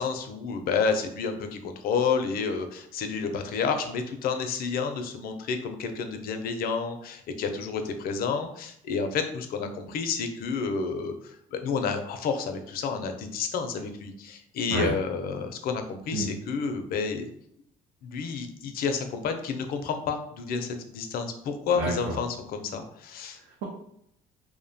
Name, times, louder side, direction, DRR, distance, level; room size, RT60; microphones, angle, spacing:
voice 1, 0.0-17.3 18.0-23.4, left 5 dB, 60° left, 7 dB, 0.4 m, -30 dB
voice 2, 21.7-22.2 23.3-23.6, right 2 dB, 80° right, -3 dB, 0.6 m, -30 dB
2.6 x 2.1 x 2.6 m, 0.72 s
cardioid pair, 110°, 17 cm